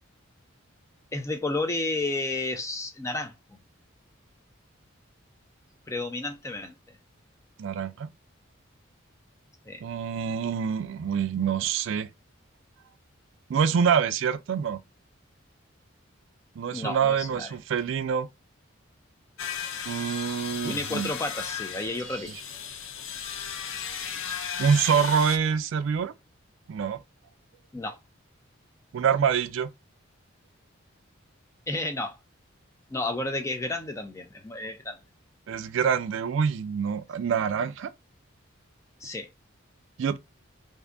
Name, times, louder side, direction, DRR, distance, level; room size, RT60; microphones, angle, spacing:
voice 1, 1.1-3.3 5.9-6.7 9.7-9.8 16.7-17.5 20.6-22.3 27.7-28.0 31.7-32.2 32.9-35.0 39.0-39.3, left 2 dB, 15° left, 0.4 m, -31 dB
voice 2, 7.6-8.1 9.8-12.1 13.5-14.8 16.6-18.3 19.9-21.1 24.6-26.1 26.7-27.0 28.9-29.7 35.5-37.9 40.0-40.2, right 7 dB, 65° right, 0.3 m, -26 dB
sound 1, 19.4-25.4, left 7 dB, 70° left, 0.5 m, -35 dB
3.5 x 2.6 x 2.5 m
head